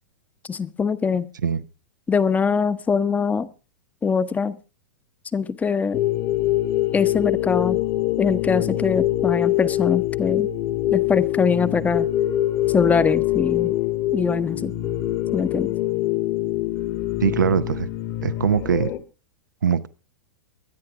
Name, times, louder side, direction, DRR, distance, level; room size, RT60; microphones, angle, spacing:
voice 1, 0.5-1.3 2.1-3.5 4.0-4.6 5.3-6.0 6.9-7.8 8.2-10.5 10.9-12.1 12.7-13.7 14.1-14.7 15.3-15.7, left 5 dB, 15° left, 0.9 m, -23 dB
sound 1, 5.9-19.0, left 15 dB, 45° left, 1.8 m, -24 dB
voice 2, 17.2-17.9 18.2-18.9 19.6-19.9, right 7 dB, 80° right, 0.7 m, -21 dB
23.5 x 9.7 x 3.6 m
hypercardioid pair, 105°, 10 cm